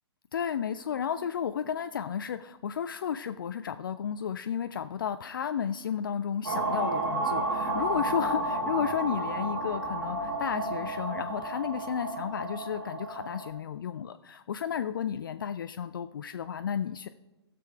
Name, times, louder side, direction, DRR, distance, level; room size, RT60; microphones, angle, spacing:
voice 1, 0.3-17.1, left 8 dB, 50° left, 10 dB, 0.4 m, -33 dB
sound 1, 6.5-13.5, right 2 dB, 60° right, 2.2 m, -32 dB
16.0 x 6.8 x 3.3 m, 1.1 s
figure-of-eight pair, 120°, 14 cm